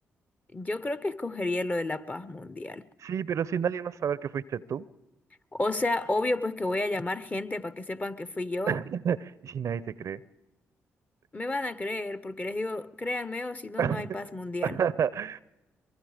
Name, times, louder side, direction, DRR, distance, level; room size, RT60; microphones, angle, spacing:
voice 1, 0.5-2.8 5.5-8.8 11.3-14.8, left 2 dB, 25° left, 0.9 m, -31 dB
voice 2, 3.0-4.8 8.7-10.2 13.8-14.2 14.6-15.4, right 7 dB, 60° right, 0.6 m, -30 dB
23.5 x 22.0 x 5.0 m
hypercardioid pair, 45°, 6 cm